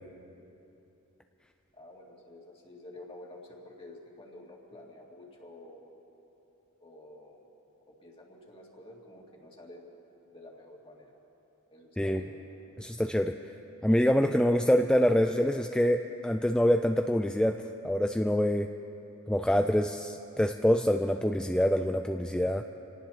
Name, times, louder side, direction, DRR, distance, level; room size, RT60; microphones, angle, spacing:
voice 1, 1.7-5.8 6.8-7.5 7.9-9.9 10.3-11.2 11.7-12.3, left 1 dB, 25° left, -2 dB, 2.4 m, -50 dB
voice 2, 12.8-13.3 13.8-18.7 19.3-22.6, equal, 5° left, 5 dB, 0.3 m, -25 dB
27.5 x 18.0 x 2.9 m, 3.0 s
head